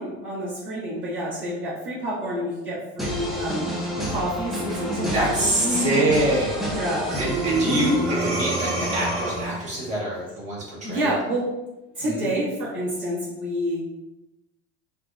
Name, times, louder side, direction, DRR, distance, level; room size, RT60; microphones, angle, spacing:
voice 1, 0.0-3.7 4.1-6.0 6.7-7.1 7.6-8.0 10.8-11.4 11.9-13.8, equal, 35° right, -10 dB, 1.1 m, -28 dB
sound 1, 3.0-9.9, equal, ahead, 0.5 m, -30 dB
voice 2, 5.1-6.5 7.2-11.1 12.0-12.3, right 2 dB, 20° right, -6 dB, 1.3 m, -25 dB
Breathing, 7.1-9.7, right 1 dB, 75° right, 1.1 m, -27 dB
3.6 x 2.0 x 2.4 m, 1.0 s
supercardioid pair, 110°, 33 cm